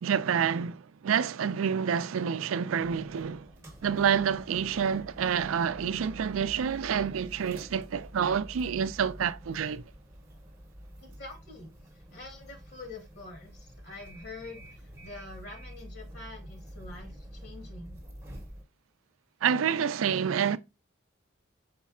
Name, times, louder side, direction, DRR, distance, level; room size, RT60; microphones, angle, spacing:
voice 1, 0.0-3.5 3.8-9.8 19.4-20.6, right 7 dB, 85° right, 0.4 m, -28 dB
sound 1, 2.8-18.6, equal, 15° right, 0.9 m, -48 dB
voice 2, 11.0-18.0, left 2 dB, 50° left, 1.3 m, -46 dB
5.1 x 4.2 x 2.3 m
head